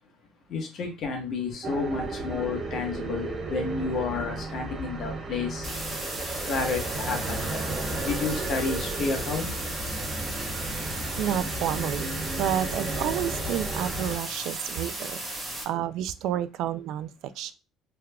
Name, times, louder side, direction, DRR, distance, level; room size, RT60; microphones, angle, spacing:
voice 1, 0.5-5.7 6.4-9.5, left 4 dB, 55° left, 1.2 m, -31 dB
sound 1, 1.6-14.2, right 2 dB, 40° right, 1.0 m, -34 dB
sound 2, 5.6-15.6, right 1 dB, 20° right, 1.4 m, -35 dB
voice 2, 11.2-12.1 12.4-17.5, right 11 dB, 75° right, 0.3 m, -30 dB
3.5 x 3.3 x 2.3 m
cardioid pair, 105°, 0 cm